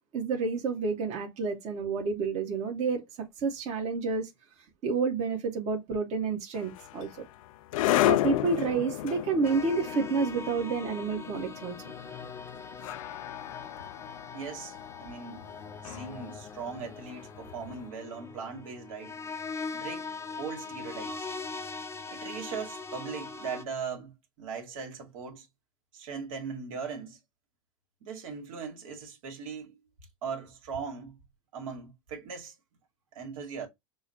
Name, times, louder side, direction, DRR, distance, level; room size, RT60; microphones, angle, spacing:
voice 1, 0.1-3.0 3.4-4.3 4.8-7.2 8.0-11.8, right 4 dB, 40° right, 1.2 m, -29 dB
sound 1, 6.5-17.7, left 15 dB, 75° left, 0.4 m, -33 dB
sound 2, 9.4-23.6, left 4 dB, 15° left, 0.6 m, -41 dB
voice 2, 14.3-15.5 15.8-19.2 19.7-20.1 20.4-21.3 22.1-25.5 25.9-27.2 28.0-29.8 30.2-31.2 31.5-32.5 33.1-33.7, right 6 dB, 75° right, 1.7 m, -39 dB
6.2 x 2.1 x 2.6 m
hypercardioid pair, 110°, 17 cm